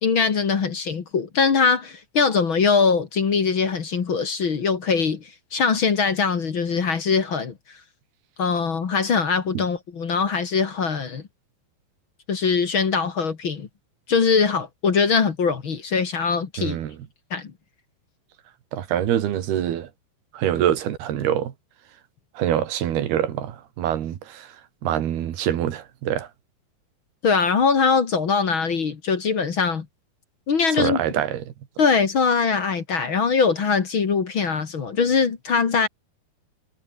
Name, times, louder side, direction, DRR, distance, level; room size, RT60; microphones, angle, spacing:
voice 1, 0.0-7.5 8.4-11.2 12.3-13.7 14.1-16.8 17.3-17.5 27.2-29.9 30.5-31.0 31.8-35.9, left 5 dB, 40° left, 2.1 m, -22 dB
voice 2, 16.6-17.0 18.7-19.9 20.3-21.5 22.4-24.5 24.8-26.3 30.8-31.5, right 10 dB, 90° right, 4.0 m, -25 dB
omnidirectional pair, 4.4 m